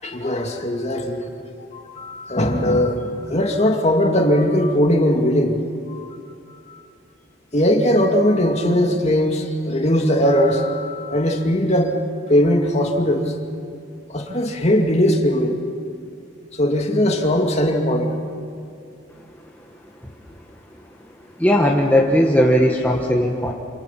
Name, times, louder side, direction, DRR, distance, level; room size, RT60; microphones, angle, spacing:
voice 1, 0.0-1.3 1.6-3.0 3.3-5.6 5.9-6.1 6.7-6.8 7.5-12.0 12.3-13.3 14.1-15.6 16.6-18.1, equal, 35° left, 2 dB, 2.3 m, -19 dB
voice 2, 21.4-23.5, equal, 10° left, -1 dB, 1.3 m, -17 dB
28.0 x 27.5 x 5.8 m, 2.4 s
head